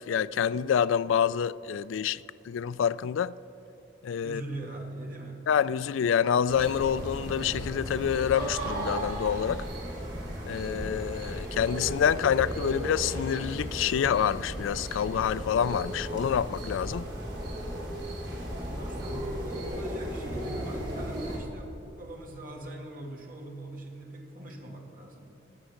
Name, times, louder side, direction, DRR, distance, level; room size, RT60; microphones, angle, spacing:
voice 1, 0.0-3.3 4.0-4.4 5.5-9.6 10.5-17.1, left 8 dB, 85° left, 0.3 m, -27 dB
voice 2, 4.2-5.5 18.6-25.3, right 1 dB, 45° right, 2.0 m, -42 dB
sound 1, 6.5-21.4, equal, 60° right, 3.5 m, -35 dB
17.0 x 9.6 x 6.4 m
head